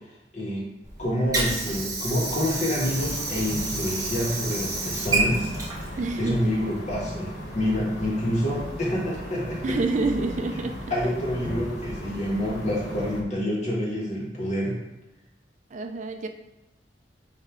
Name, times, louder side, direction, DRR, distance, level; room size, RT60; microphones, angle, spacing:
Water / Sink (filling or washing), 0.8-6.8, right 2 dB, 20° right, 1.3 m, -30 dB
voice 1, 1.0-9.8 10.9-14.8, equal, 40° left, -4 dB, 1.8 m, -27 dB
sound 1, 2.8-13.2, equal, 65° left, 1.3 m, -37 dB
voice 2, 6.0-6.6 9.6-10.8 15.7-16.3, right 3 dB, 40° right, 5 dB, 0.4 m, -27 dB
8.9 x 3.2 x 3.7 m, 0.94 s
head